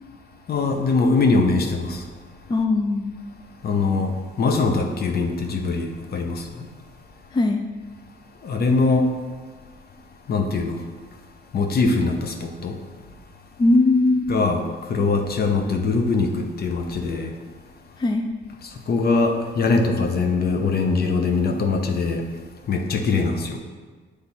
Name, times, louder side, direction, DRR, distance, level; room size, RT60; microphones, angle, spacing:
voice 1, 0.5-2.0 3.6-6.7 8.4-9.1 10.3-10.8 11.5-12.7 14.3-17.3 18.6-22.2 22.7-23.6, left 3 dB, 50° left, 4 dB, 0.8 m, -22 dB
voice 2, 2.5-3.1 7.3-7.7 13.6-14.4 18.0-18.3, left 2 dB, 20° left, 4 dB, 0.4 m, -19 dB
8.0 x 3.3 x 4.2 m, 1.4 s
cardioid pair, 90°, 20 cm